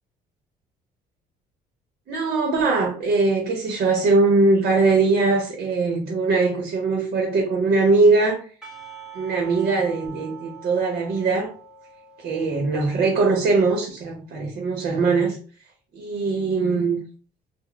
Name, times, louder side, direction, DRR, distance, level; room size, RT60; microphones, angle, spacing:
voice 1, 2.1-8.4 9.1-11.5 12.2-15.4 15.9-17.0, right 3 dB, 60° right, 0.8 m, -21 dB
Percussion / Church bell, 8.6-13.7, right 7 dB, 5° right, 0.9 m, -44 dB
2.1 x 2.1 x 3.8 m
cardioid pair, 110°, 17 cm